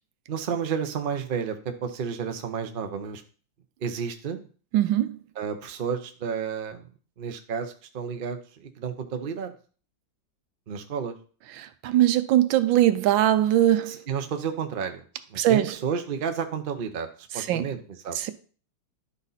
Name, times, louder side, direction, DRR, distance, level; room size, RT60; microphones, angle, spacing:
voice 1, 0.3-3.2 3.8-4.5 5.4-6.9 7.2-9.5 10.7-11.2 13.9-15.0 15.3-18.3, right 6 dB, 55° right, 0.6 m, -31 dB
voice 2, 4.7-5.1 11.6-14.0 15.4-15.8 17.3-17.8 18.1-18.3, right 12 dB, 80° right, 1.4 m, -21 dB
11.0 x 4.1 x 4.0 m
omnidirectional pair, 2.1 m